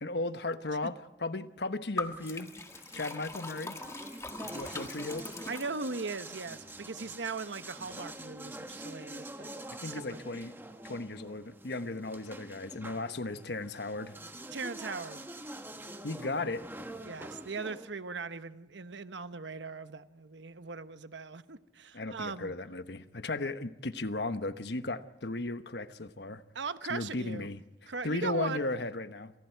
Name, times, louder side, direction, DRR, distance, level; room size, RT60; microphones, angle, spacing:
voice 1, 0.0-2.5 2.9-3.8 4.4-5.3 9.8-10.6 10.8-14.2 16.0-16.6 21.9-26.4 26.9-27.6 28.0-29.3, left 2 dB, 70° left, 1.1 m, -36 dB
Liquid, 2.0-6.2, left 3 dB, 15° left, 1.5 m, -41 dB
sound 1, 2.0-17.9, right 1 dB, 10° right, 1.2 m, -46 dB
voice 2, 5.5-9.5 9.8-10.2 14.5-15.3 17.0-22.5 26.5-27.5 27.9-28.7, right 4 dB, 85° right, 1.0 m, -39 dB
29.0 x 27.0 x 4.6 m
head